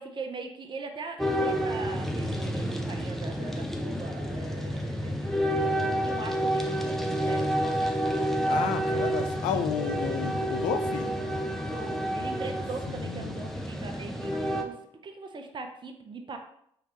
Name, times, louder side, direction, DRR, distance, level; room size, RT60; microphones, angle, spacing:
voice 1, 0.0-7.9 8.8-9.2 11.6-14.8 15.0-16.4, right 4 dB, 40° right, 4 dB, 0.7 m, -40 dB
sound 1, 1.2-14.6, equal, 5° left, 0.7 m, -29 dB
voice 2, 8.5-11.1 12.9-13.4, left 8 dB, 80° left, 9 dB, 0.4 m, -32 dB
4.6 x 3.3 x 2.9 m, 0.70 s
supercardioid pair, 60°, 13 cm